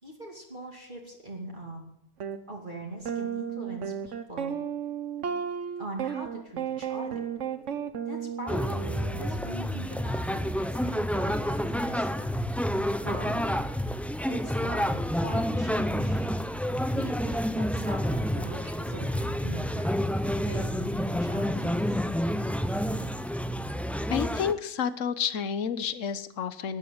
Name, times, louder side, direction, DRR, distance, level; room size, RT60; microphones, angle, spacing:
voice 1, 0.0-1.9 2.5-4.6 5.8-7.3 8.0-10.4 10.7-12.2 13.0-13.4 14.3-16.3 16.9-20.0 20.4-22.0, right 1 dB, 30° right, -1 dB, 2.6 m, -42 dB
sound 1, 2.2-2.4 3.1-9.4, right 8 dB, 55° right, 1.3 m, -33 dB
sound 2, 8.5-24.5, equal, ahead, 0.3 m, -29 dB
voice 2, 24.1-26.8, left 7 dB, 60° left, 14 dB, 1.3 m, -30 dB
13.0 x 11.0 x 8.9 m, 0.72 s
omnidirectional pair, 1.5 m